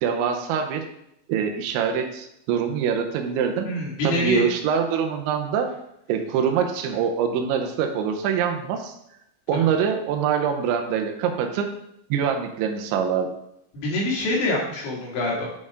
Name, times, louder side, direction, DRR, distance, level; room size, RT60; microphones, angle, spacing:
voice 1, 0.0-0.9 1.3-3.7 4.0-5.7 6.1-8.9 9.5-11.8 12.1-13.3, right 7 dB, 85° right, 5 dB, 3.2 m, -24 dB
voice 2, 3.6-4.5 9.5-9.6 13.7-15.5, left 1 dB, 75° left, -4 dB, 4.3 m, -25 dB
9.7 x 4.4 x 4.8 m, 0.79 s
omnidirectional pair, 5.3 m